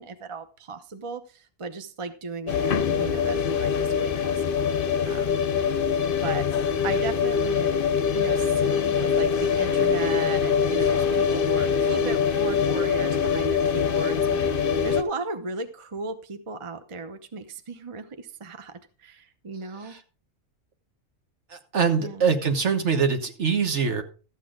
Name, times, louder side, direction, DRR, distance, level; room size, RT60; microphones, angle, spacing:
voice 1, 0.0-4.7 5.1-5.4 6.2-6.5 6.8-7.7 8.1-20.0 21.9-22.3, right 3 dB, 30° right, 9 dB, 0.8 m, -36 dB
sound 1, 2.5-15.0, left 6 dB, 50° left, 0.8 m, -23 dB
voice 2, 21.5-24.0, right 6 dB, 60° right, 6 dB, 1.5 m, -23 dB
13.5 x 8.4 x 3.8 m, 0.36 s
omnidirectional pair, 1.3 m